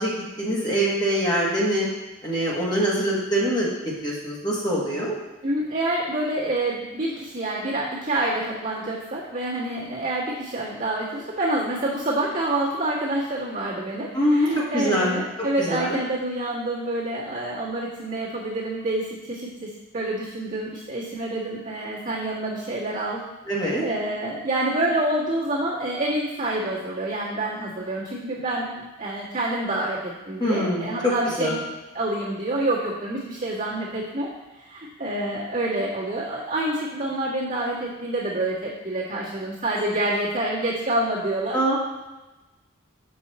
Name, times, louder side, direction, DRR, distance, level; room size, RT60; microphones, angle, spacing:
voice 1, 0.0-1.9 2.2-3.7 4.0-5.1 14.1-15.2 15.6-16.0 23.5-23.8 30.4-31.1 31.4-31.5 41.5-41.7, equal, 20° left, -5 dB, 1.5 m, -24 dB
voice 2, 5.4-23.2 23.8-31.7 31.9-34.3 34.6-41.6, right 1 dB, 40° right, -8 dB, 1.6 m, -27 dB
6.9 x 5.5 x 4.2 m, 1.1 s
head